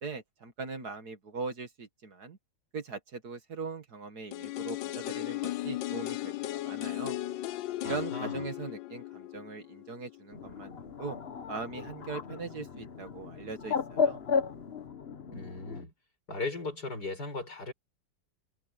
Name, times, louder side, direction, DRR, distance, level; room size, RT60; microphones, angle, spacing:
voice 1, 0.0-2.4 2.7-7.2 7.8-11.2 11.5-14.2, right 4 dB, 60° right, 2.4 m, -40 dB
sound 1, 4.3-10.2 10.5-10.6, left 15 dB, 90° left, 1.3 m, -36 dB
voice 2, 7.8-8.4 15.3-15.9 16.3-17.7, left 3 dB, 60° left, 6.9 m, -37 dB
Bird, 10.3-15.8, left 5 dB, 40° left, 1.1 m, -34 dB
omnidirectional pair, 1.9 m